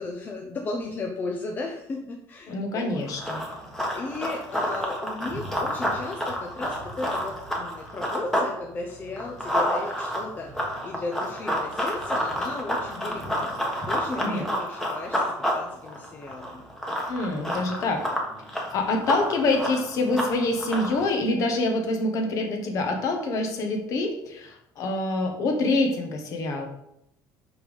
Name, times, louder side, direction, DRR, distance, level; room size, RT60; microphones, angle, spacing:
voice 1, 0.0-3.0 3.9-16.7, left 3 dB, 25° left, 1 dB, 0.7 m, -35 dB
voice 2, 2.5-3.4 14.2-14.5 17.1-18.0 18.5-26.7, left 2 dB, 50° left, 4 dB, 1.5 m, -26 dB
Run, 3.0-8.5 8.8-21.1, equal, 5° left, 1.3 m, -29 dB
5.7 x 5.3 x 5.4 m, 0.80 s
cardioid pair, 160°, 8 cm